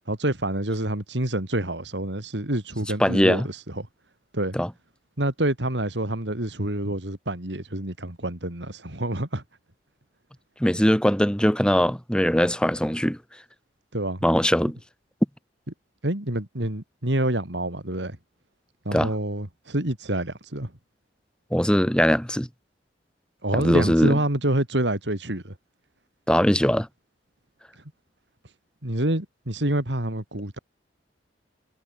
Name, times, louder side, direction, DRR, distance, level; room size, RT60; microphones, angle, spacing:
voice 1, 0.1-3.9 4.3-4.6 5.2-9.4 13.9-14.2 16.0-18.2 18.9-20.7 23.4-25.5 28.8-30.6, right 1 dB, 75° right, 3.9 m, -27 dB
voice 2, 3.0-3.5 4.5-4.7 10.6-13.2 14.2-14.8 18.9-19.1 21.5-22.5 23.5-24.2 26.3-26.9, equal, 5° left, 5.0 m, -21 dB
head